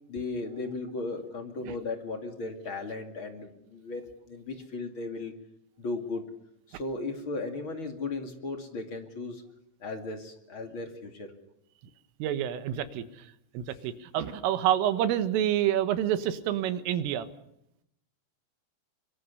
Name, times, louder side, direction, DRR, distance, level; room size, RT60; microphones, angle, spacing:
voice 1, 0.1-5.3 5.8-6.2 6.7-9.4 9.8-11.3, left 3 dB, 40° left, 5 dB, 2.0 m, -36 dB
voice 2, 12.2-13.0 13.6-17.3, right 11 dB, 85° right, 11 dB, 4.0 m, -28 dB
24.0 x 24.0 x 6.9 m, 0.77 s
omnidirectional pair, 5.7 m